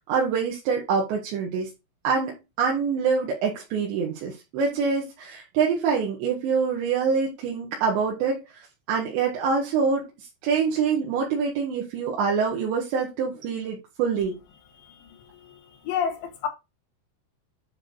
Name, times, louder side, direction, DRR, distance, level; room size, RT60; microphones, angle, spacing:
voice 1, 0.1-1.7 2.0-2.3 2.6-14.4, right 5 dB, 80° right, 4.0 m, -25 dB
voice 2, 15.8-16.5, left 7 dB, 80° left, 4.1 m, -28 dB
9.8 x 4.5 x 4.0 m
omnidirectional pair, 5.1 m